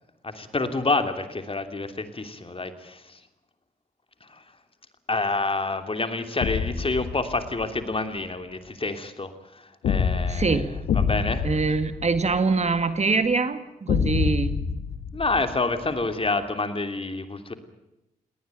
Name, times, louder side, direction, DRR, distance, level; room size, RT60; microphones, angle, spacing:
voice 1, 0.2-3.2 4.2-4.4 5.1-10.6 10.9-11.4 15.1-17.5, left 3 dB, 35° left, 8 dB, 2.9 m, -28 dB
sound 1, 6.4-7.8 9.8-12.8 13.9-16.0, left 6 dB, 85° left, 1.5 m, -27 dB
voice 2, 10.3-10.8 11.4-14.6, right 4 dB, 45° right, 10 dB, 2.0 m, -24 dB
20.0 x 18.5 x 9.1 m, 0.95 s
supercardioid pair, 45°, 15 cm